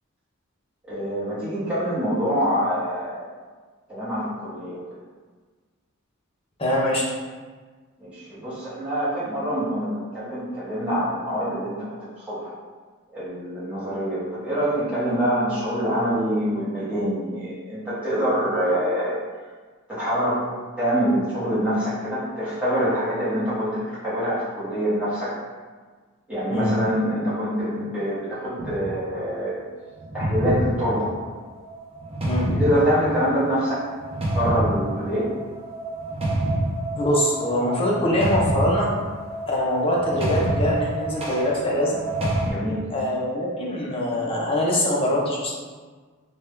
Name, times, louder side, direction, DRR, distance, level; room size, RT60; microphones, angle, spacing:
voice 1, 0.9-3.3 3.9-4.8 8.0-11.8 12.3-12.5 13.1-19.2 19.9-20.5 20.8-25.3 26.3-29.6 30.1-31.1 32.6-33.8 34.3-35.3 42.5-42.8, equal, 5° right, -12 dB, 1.1 m, -25 dB
voice 2, 6.6-7.0 26.5-26.7 32.3-32.6 37.0-38.9 39.5-42.0 42.9-45.5, left 1 dB, 25° left, -3 dB, 0.6 m, -23 dB
sound 1, 28.6-29.0 30.0-42.5, right 1 dB, 25° right, 0.5 m, -27 dB
3.4 x 2.2 x 3.2 m, 1.4 s
head